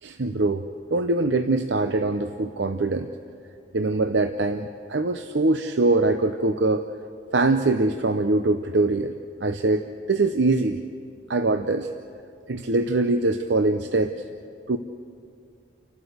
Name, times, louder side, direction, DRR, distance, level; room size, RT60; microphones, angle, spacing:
voice 1, 0.0-3.1 3.7-6.8 7.3-9.1 9.4-10.8 11.3-11.9 12.5-14.2 14.7-14.8, right 2 dB, 75° right, 8 dB, 0.7 m, -23 dB
29.5 x 12.5 x 8.0 m, 2.3 s
head